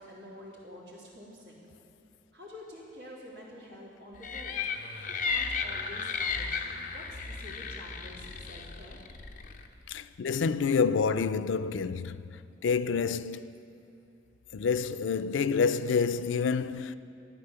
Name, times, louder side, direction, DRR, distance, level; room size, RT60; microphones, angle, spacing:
voice 1, 0.0-1.5 2.3-4.6 5.1-9.0, left 1 dB, 85° right, 3.5 m, -48 dB
sound 1, 4.2-9.7, left 5 dB, 45° left, 0.8 m, -34 dB
voice 2, 9.9-13.5 14.5-17.0, left 5 dB, 90° left, 0.4 m, -28 dB
13.5 x 9.4 x 6.9 m
head